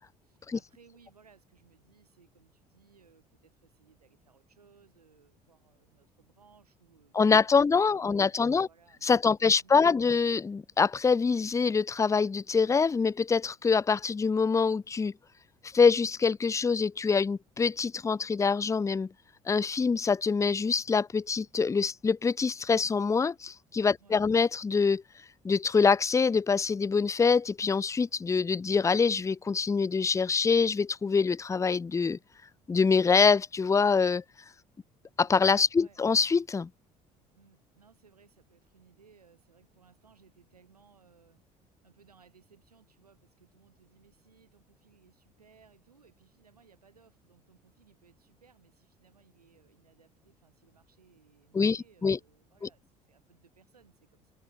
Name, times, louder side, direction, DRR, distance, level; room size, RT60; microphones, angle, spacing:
voice 1, 0.2-10.2 24.0-24.4 35.8-36.0 37.4-54.3, right 6 dB, 90° right, 3.9 m, -63 dB
voice 2, 7.1-8.7 9.0-15.1 15.7-19.1 19.5-25.0 25.4-32.2 32.7-34.2 35.2-36.7 51.5-52.2, left 5 dB, 15° left, 0.5 m, -25 dB
figure-of-eight pair, 55°, 19 cm